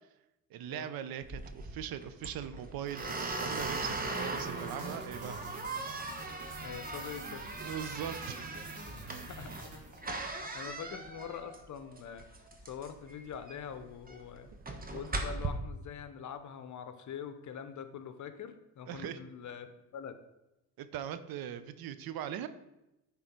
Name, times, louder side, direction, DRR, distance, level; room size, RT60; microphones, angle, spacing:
voice 1, 0.5-5.4 7.6-8.4 10.6-10.7 14.7-14.8 18.9-19.2 20.8-22.5, right 10 dB, 65° right, 12 dB, 0.7 m, -40 dB
sound 1, 1.2-15.5, right 3 dB, 25° right, 1.1 m, -39 dB
sound 2, 2.9-10.4, right 2 dB, 50° right, 2.2 m, -47 dB
voice 2, 6.6-7.6 8.9-9.5 10.1-10.2 10.5-12.3 12.6-14.5 14.9-20.2, left 8 dB, 50° left, 10 dB, 0.8 m, -44 dB
9.7 x 3.9 x 4.5 m, 0.93 s
supercardioid pair, 80°, 38 cm